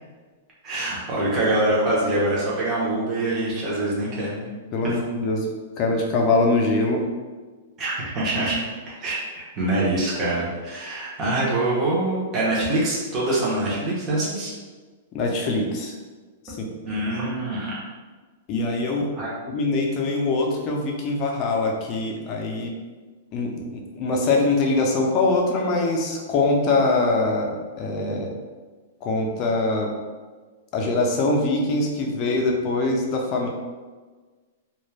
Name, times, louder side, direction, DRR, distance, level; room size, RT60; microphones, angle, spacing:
voice 1, 0.6-4.5 4.8-5.0 7.8-8.6 8.9-14.5 16.8-17.8 19.2-19.3, right 2 dB, 25° right, -6 dB, 0.7 m, -24 dB
voice 2, 4.7-5.4 5.8-7.0 15.1-15.9 16.5-16.6 18.5-19.1 19.5-22.7 23.3-28.3 29.0-29.9 30.7-33.5, left 2 dB, 35° left, 0 dB, 0.5 m, -23 dB
2.3 x 2.1 x 3.2 m, 1.4 s
hypercardioid pair, 145°, 0 cm